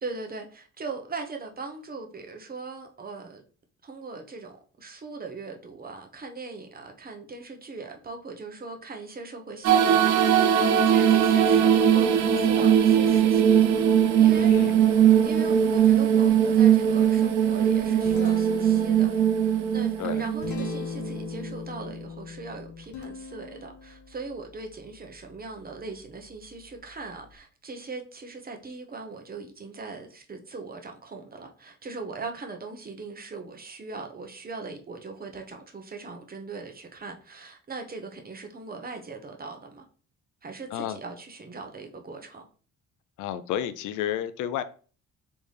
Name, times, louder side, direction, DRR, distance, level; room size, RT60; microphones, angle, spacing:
voice 1, 0.0-3.4 3.8-13.8 14.2-14.5 15.2-19.1 19.4-39.9 40.4-42.4, right 3 dB, 30° right, 1.0 m, -40 dB
sound 1, 9.6-21.5, right 9 dB, 75° right, 0.6 m, -20 dB
voice 2, 14.4-14.7 20.0-20.3 40.7-41.0 43.2-44.6, left 10 dB, 85° left, 0.5 m, -31 dB
Guitar, 17.6-27.4, left 3 dB, 65° left, 0.9 m, -41 dB
4.0 x 3.4 x 3.3 m
cardioid pair, 90°, 30 cm